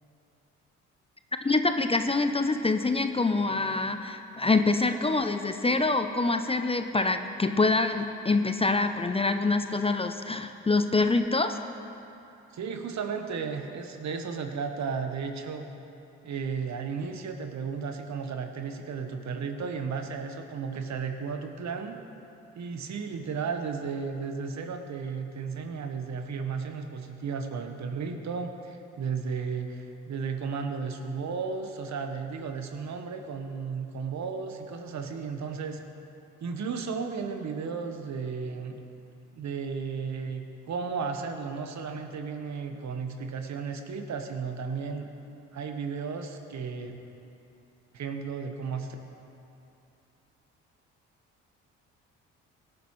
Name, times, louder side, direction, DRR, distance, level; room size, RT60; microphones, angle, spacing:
voice 1, 1.4-11.6, left 3 dB, 20° left, 8 dB, 0.6 m, -25 dB
voice 2, 12.5-15.7 16.2-22.0 22.5-35.8 36.4-38.8 39.3-45.1 45.5-46.9 47.9-49.0, right 5 dB, 60° right, 5 dB, 1.2 m, -34 dB
17.5 x 9.8 x 3.2 m, 2.8 s
supercardioid pair, 55°, 32 cm